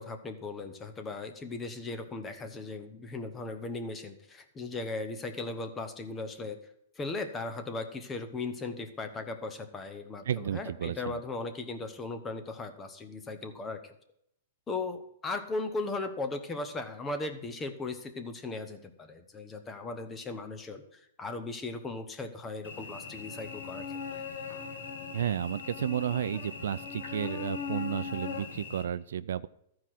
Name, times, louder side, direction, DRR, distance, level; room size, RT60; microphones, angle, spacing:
voice 1, 0.0-6.6 7.0-13.9 14.7-24.0, left 3 dB, 15° left, 8 dB, 0.8 m, -37 dB
voice 2, 10.3-11.2 25.1-29.5, right 9 dB, 80° right, 15 dB, 0.4 m, -32 dB
Cricket / Buzz, 22.6-28.8, left 5 dB, 90° left, 1.8 m, -39 dB
14.0 x 4.8 x 5.9 m, 0.74 s
hypercardioid pair, 165°, 0 cm